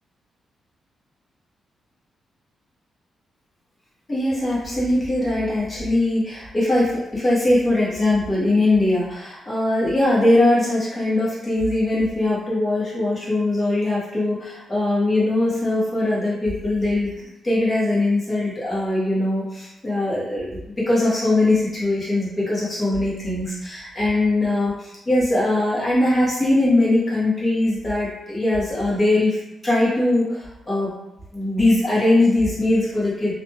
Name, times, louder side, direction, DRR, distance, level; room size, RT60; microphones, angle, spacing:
voice 1, 4.1-17.1 17.4-20.6 20.9-30.9 31.3-33.3, left 2 dB, 25° left, -7 dB, 1.2 m, -21 dB
2.6 x 2.3 x 2.8 m, 0.87 s
cardioid pair, 115°, 0 cm